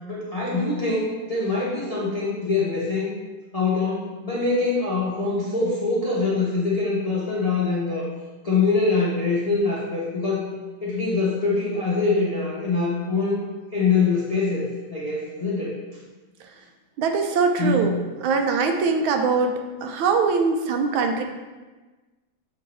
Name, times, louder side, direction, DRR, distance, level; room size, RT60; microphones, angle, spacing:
voice 1, 0.1-3.1 3.5-8.1 8.4-10.5 10.8-13.4 13.7-15.8 17.6-17.9, left 3 dB, 35° left, -6 dB, 0.6 m, -24 dB
voice 2, 17.0-21.2, right 4 dB, 75° right, 4 dB, 1.4 m, -22 dB
6.9 x 3.7 x 4.2 m, 1.2 s
omnidirectional pair, 2.3 m